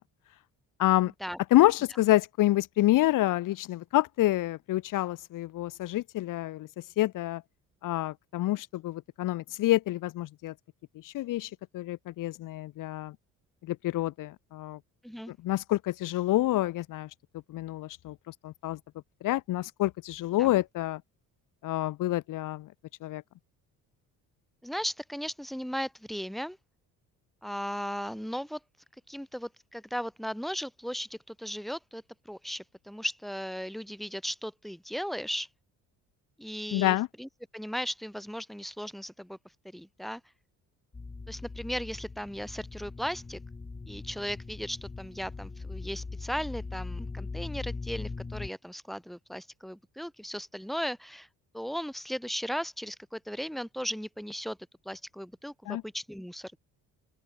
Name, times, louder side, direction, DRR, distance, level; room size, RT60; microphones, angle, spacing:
voice 1, 0.8-1.1 1.5-6.7 7.0-7.4 7.8-10.5 11.0-13.1 13.7-14.8 15.4-17.1 17.5-18.1 18.4-18.8 19.2-21.0 21.6-22.7 23.0-23.2 36.7-37.1 55.7-55.8, left 16 dB, 70° left, 1.5 m, -27 dB
voice 2, 24.6-26.6 27.4-28.6 29.1-35.5 36.4-39.4 39.6-40.2 41.3-43.4 43.9-51.3 51.5-54.6 54.9-56.6, equal, ahead, 5.7 m, -36 dB
sound 1, 40.9-48.5, left 3 dB, 15° left, 3.2 m, -40 dB
open air
cardioid pair, 140°, 33 cm